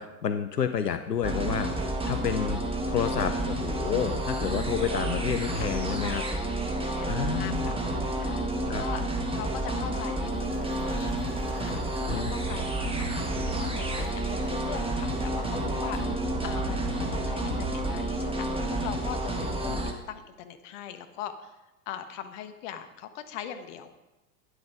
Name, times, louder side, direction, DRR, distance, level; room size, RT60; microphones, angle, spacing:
voice 1, 0.0-1.7 2.0-2.6 2.9-6.2 7.1-7.8 8.7-8.8 12.1-12.3 19.7-19.8, left 8 dB, 85° left, 9 dB, 0.8 m, -30 dB
sound 1, 1.2-19.9, right 1 dB, 10° right, 1.5 m, -30 dB
voice 2, 5.6-6.3 6.8-7.9 8.2-9.0 9.3-11.8 12.1-12.6 13.0-13.2 13.5-19.8 20.1-21.6 21.9-23.9, left 9 dB, 50° left, 8 dB, 1.3 m, -41 dB
sound 2, 10.2-17.9, right 3 dB, 85° right, 1.8 m, -40 dB
12.5 x 10.0 x 5.0 m, 1.1 s
figure-of-eight pair, 85°, 47 cm